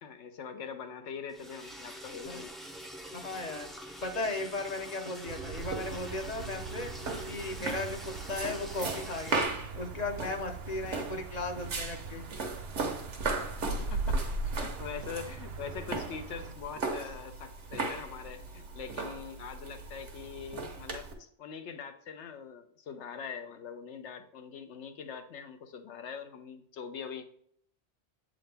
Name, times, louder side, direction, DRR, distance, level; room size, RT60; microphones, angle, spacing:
voice 1, 0.0-2.5 13.8-27.2, left 6 dB, 80° left, 8 dB, 1.0 m, -43 dB
Liquid, 1.3-9.4, equal, ahead, 0.4 m, -45 dB
voice 2, 3.1-3.7 4.0-6.9 7.2-8.0 8.3-9.5 9.8-12.2, left 2 dB, 40° left, 5 dB, 0.7 m, -36 dB
sound 1, 5.2-16.5, right 6 dB, 65° right, 0.8 m, -45 dB
sound 2, 5.6-21.1, right 3 dB, 80° right, 1.3 m, -37 dB
7.7 x 3.8 x 3.3 m, 0.65 s
omnidirectional pair, 1.2 m